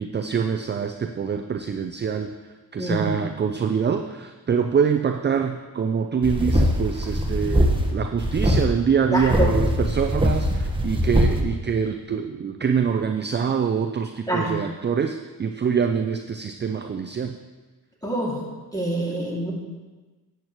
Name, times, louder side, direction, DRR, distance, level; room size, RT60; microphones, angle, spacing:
voice 1, 0.0-2.3 2.7-17.4, right 6 dB, 30° right, 6 dB, 0.5 m, -25 dB
voice 2, 2.8-3.1 9.1-9.5 14.3-14.5 18.0-18.4 18.7-19.5, right 1 dB, 10° left, -3 dB, 2.5 m, -25 dB
sound 1, 6.2-7.9 8.2-8.6 9.2-11.4, equal, 15° right, 1.3 m, -21 dB
10.5 x 8.0 x 3.1 m, 1.3 s
cardioid pair, 70°, 39 cm